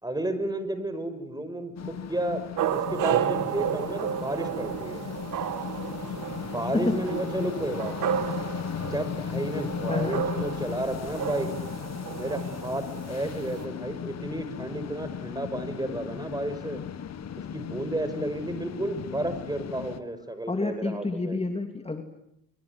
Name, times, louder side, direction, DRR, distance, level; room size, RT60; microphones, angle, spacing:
voice 1, 0.0-2.4 2.7-5.0 6.4-8.2 8.8-11.5 12.1-16.8 17.5-21.4, right 1 dB, 10° right, 11 dB, 5.7 m, -32 dB
sound 1, 1.8-20.0, left 8 dB, 55° left, 1.8 m, -36 dB
sound 2, 2.6-13.7, right 10 dB, 75° right, 2.2 m, -32 dB
voice 2, 9.9-10.2 20.5-22.0, left 2 dB, 20° left, 6 dB, 2.9 m, -29 dB
25.0 x 24.5 x 9.7 m, 0.78 s
cardioid pair, 80°, 31 cm